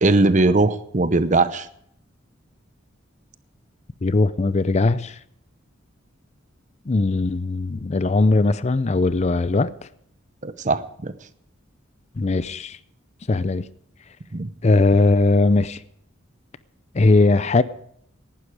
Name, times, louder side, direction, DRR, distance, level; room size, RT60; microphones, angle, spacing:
voice 1, 0.0-1.7 10.4-11.1 14.3-14.5, right 2 dB, 40° right, 0.8 m, -19 dB
voice 2, 4.0-5.2 6.9-9.7 12.2-12.8 13.3-13.6 14.6-15.8 16.9-17.6, left 3 dB, 35° left, 0.5 m, -19 dB
18.5 x 11.5 x 4.8 m
head